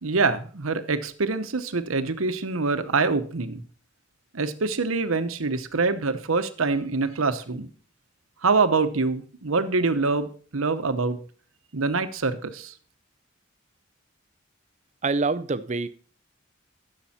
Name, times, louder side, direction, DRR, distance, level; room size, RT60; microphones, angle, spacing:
voice 1, 0.0-3.6 4.3-7.7 8.4-11.2 11.7-12.7, right 4 dB, 90° right, 11 dB, 1.0 m, -25 dB
voice 2, 15.0-15.9, right 3 dB, 35° right, 15 dB, 0.6 m, -25 dB
14.5 x 6.9 x 4.3 m, 0.43 s
head